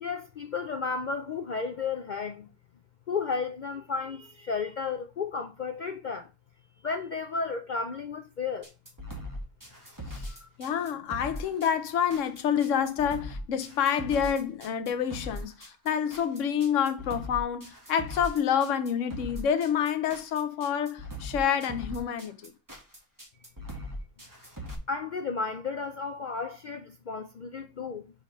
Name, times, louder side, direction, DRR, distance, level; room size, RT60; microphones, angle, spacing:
voice 1, 0.0-2.5 3.1-6.2 6.8-8.6 24.9-28.0, left 5 dB, 85° left, 0.4 m, -33 dB
sound 1, 8.6-24.7, equal, 15° right, 1.5 m, -40 dB
voice 2, 10.6-22.5, left 8 dB, 65° left, 1.1 m, -28 dB
5.2 x 5.1 x 5.3 m
omnidirectional pair, 1.5 m